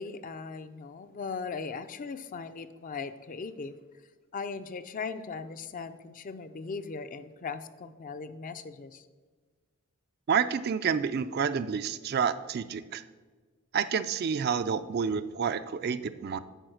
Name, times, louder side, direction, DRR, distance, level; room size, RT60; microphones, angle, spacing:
voice 1, 0.0-3.8 4.3-9.0, left 4 dB, 40° left, 10 dB, 0.4 m, -38 dB
voice 2, 10.3-13.0 13.7-16.4, right 6 dB, 50° right, 12 dB, 0.4 m, -29 dB
9.0 x 4.6 x 6.4 m, 1.4 s
head